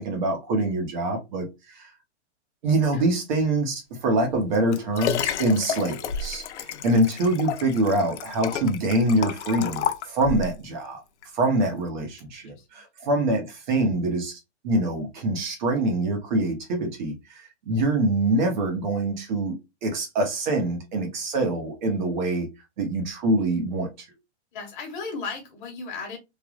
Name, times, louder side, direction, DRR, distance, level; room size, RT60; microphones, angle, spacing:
voice 1, 0.0-1.9 2.6-11.0 11.3-14.4 14.6-19.6 19.8-22.5 22.8-23.9, right 2 dB, 40° right, 3 dB, 1.0 m, -25 dB
Liquid, 4.3-10.6 11.2-11.3, left 8 dB, 75° left, 0.5 m, -31 dB
voice 2, 12.4-12.8 24.5-26.2, left 4 dB, 45° left, 3 dB, 1.2 m, -36 dB
3.3 x 2.4 x 2.3 m, 0.23 s
hypercardioid pair, 165°, 35 cm